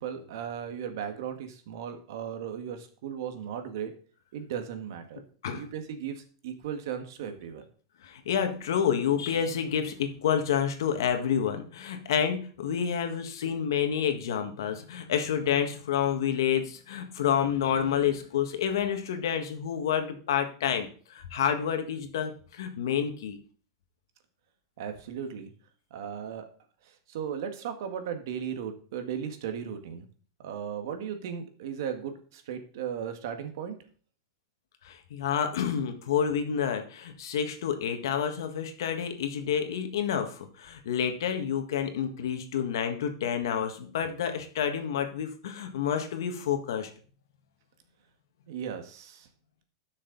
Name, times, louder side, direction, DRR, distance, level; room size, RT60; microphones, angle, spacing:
voice 1, 0.0-3.9 4.3-5.2 5.5-7.6 24.8-25.5 25.9-26.5 26.8-30.1 30.4-33.8 48.5-49.3, right 8 dB, 65° right, 7 dB, 1.7 m, -36 dB
voice 2, 8.0-23.4 34.8-46.9, left 8 dB, 80° left, 6 dB, 1.6 m, -29 dB
12.0 x 6.4 x 4.0 m, 0.43 s
supercardioid pair, 160°, 2 cm